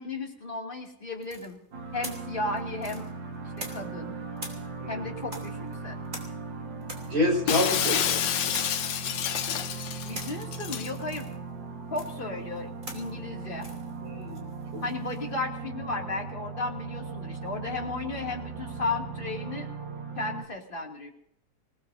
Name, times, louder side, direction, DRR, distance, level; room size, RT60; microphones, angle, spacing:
voice 1, 0.0-1.6 1.9-3.1 3.4-4.2 4.9-6.0 10.0-11.3 11.9-13.7 14.8-19.7 20.2-21.1, left 3 dB, 30° left, -1 dB, 2.8 m, -34 dB
sound 1, 1.2-4.0 4.4-15.3, right 1 dB, 25° right, 3.5 m, -45 dB
sound 2, 1.7-20.4, right 4 dB, 85° right, 2.3 m, -38 dB
voice 2, 7.1-8.2 14.0-14.4 14.7-14.8, left 1 dB, 55° right, 1 dB, 5.4 m, -27 dB
Shatter, 7.5-10.9, left 9 dB, 85° left, 1.5 m, -28 dB
27.0 x 18.5 x 2.7 m, 0.74 s
omnidirectional pair, 1.9 m